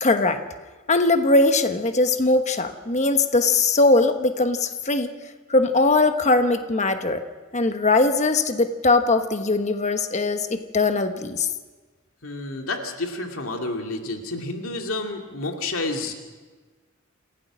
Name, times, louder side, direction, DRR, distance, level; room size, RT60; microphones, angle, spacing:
voice 1, 0.0-0.4 0.9-5.1 5.5-7.2 7.5-11.5, left 3 dB, 35° left, 7 dB, 1.1 m, -20 dB
voice 2, 12.2-16.1, left 2 dB, 80° left, 3 dB, 2.3 m, -30 dB
28.0 x 16.0 x 6.2 m, 1.3 s
head